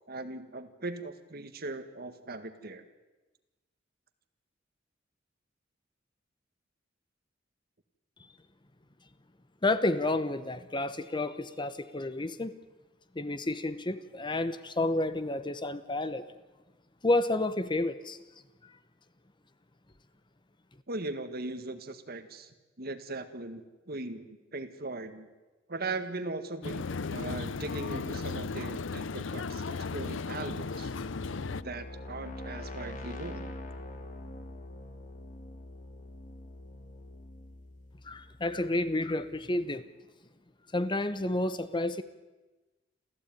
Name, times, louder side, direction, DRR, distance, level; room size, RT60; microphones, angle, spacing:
voice 1, 0.1-2.8 20.9-25.3 25.7-30.9 31.6-33.5, right 2 dB, 55° right, 9 dB, 1.8 m, -39 dB
voice 2, 9.6-12.5 13.1-16.3 17.0-18.2 38.0-39.9 40.7-42.0, left 2 dB, 25° left, 12 dB, 1.0 m, -30 dB
sound 1, 26.6-31.6, left 4 dB, 80° left, 0.7 m, -35 dB
sound 2, 30.3-39.1, left 1 dB, 40° left, 2.5 m, -44 dB
28.0 x 15.0 x 9.3 m, 1.2 s
head